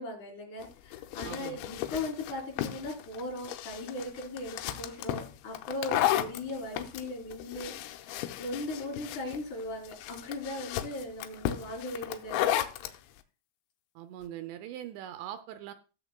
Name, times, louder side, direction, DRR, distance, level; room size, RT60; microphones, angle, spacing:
voice 1, 0.0-8.1 8.4-12.4, left 2 dB, 40° left, -2 dB, 4.3 m, -38 dB
sound 1, 0.6-13.0, left 13 dB, 85° left, 2.7 m, -34 dB
voice 2, 1.2-1.6 14.0-15.7, right 11 dB, 85° right, 9 dB, 2.6 m, -41 dB
18.5 x 6.9 x 2.2 m, 0.33 s
omnidirectional pair, 5.8 m